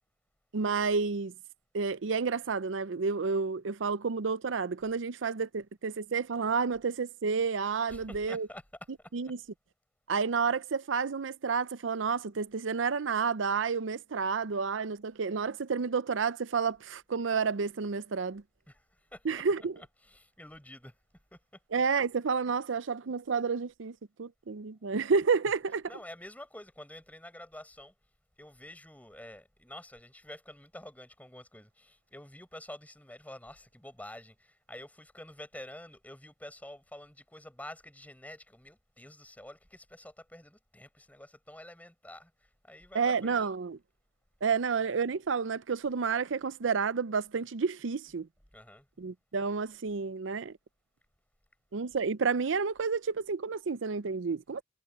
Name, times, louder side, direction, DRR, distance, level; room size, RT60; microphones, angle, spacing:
voice 1, 0.5-1.3 1.7-8.5 9.1-9.4 10.1-18.4 19.2-19.8 21.7-25.8 42.9-43.8 44.4-48.3 49.0-50.6 51.7-54.6, right 5 dB, 85° right, 0.6 m, -30 dB
voice 2, 7.9-8.6 9.0-9.3 18.7-19.7 20.0-21.0 21.3-21.4 25.5-25.6 25.9-27.9 28.4-43.4 48.5-48.9, left 1 dB, 10° left, 7.0 m, -48 dB
head